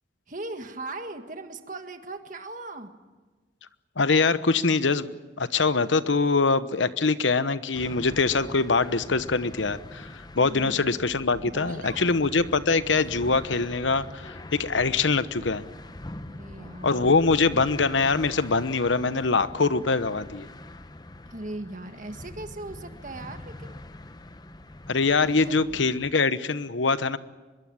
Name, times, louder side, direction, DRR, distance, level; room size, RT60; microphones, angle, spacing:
voice 1, 0.3-2.9 10.4-10.8 11.5-12.1 16.3-17.2 21.3-23.8 25.3-25.6, right 2 dB, 45° right, 7 dB, 1.8 m, -39 dB
voice 2, 4.0-5.1 5.4-15.6 16.8-20.5 24.9-27.2, left 4 dB, 80° left, 13 dB, 1.0 m, -23 dB
sound 1, 7.7-26.1, left 1 dB, 20° left, 0.7 m, -43 dB
24.5 x 22.0 x 8.8 m, 1.3 s
head